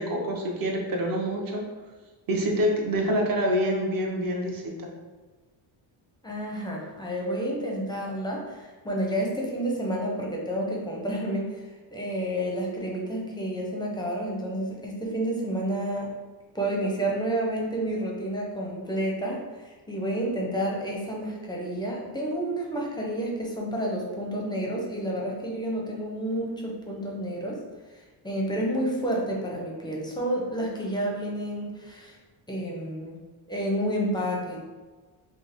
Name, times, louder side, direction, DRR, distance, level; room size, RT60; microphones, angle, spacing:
voice 1, 0.0-1.6 2.3-4.9, equal, 45° right, 0 dB, 0.8 m, -26 dB
voice 2, 6.2-11.6 11.9-16.1 16.5-27.6 27.9-32.2 32.5-33.2 33.5-34.6, right 1 dB, 10° left, -2 dB, 0.5 m, -30 dB
5.5 x 2.0 x 3.4 m, 1.3 s
wide cardioid pair, 170°, 50 cm